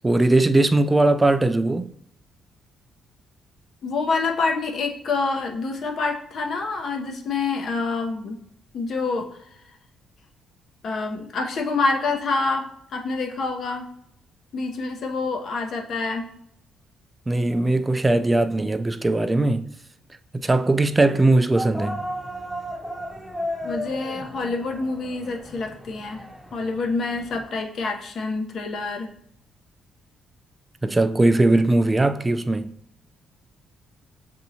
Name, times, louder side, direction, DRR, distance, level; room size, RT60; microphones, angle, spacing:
voice 1, 0.0-1.9 17.3-19.7 20.3-22.0 30.8-32.8, right 2 dB, 20° right, 0.3 m, -20 dB
voice 2, 3.8-8.4 8.7-9.3 10.8-13.9 14.5-16.3 23.6-26.2 26.5-29.1, left 3 dB, 60° left, 0.8 m, -27 dB
sound 1, 21.6-27.4, equal, ahead, 0.7 m, -34 dB
7.1 x 2.7 x 2.7 m
cardioid pair, 90°, 0 cm